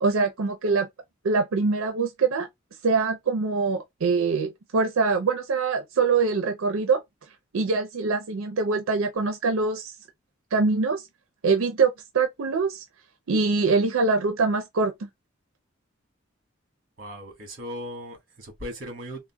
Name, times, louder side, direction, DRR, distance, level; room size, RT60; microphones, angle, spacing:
voice 1, 0.0-0.9 1.2-2.5 2.8-7.0 7.5-9.9 10.5-11.0 11.4-12.8 13.3-15.1, right 4 dB, 90° right, 0.5 m, -24 dB
voice 2, 17.0-19.3, equal, 45° right, 1.5 m, -38 dB
3.5 x 2.1 x 2.3 m
head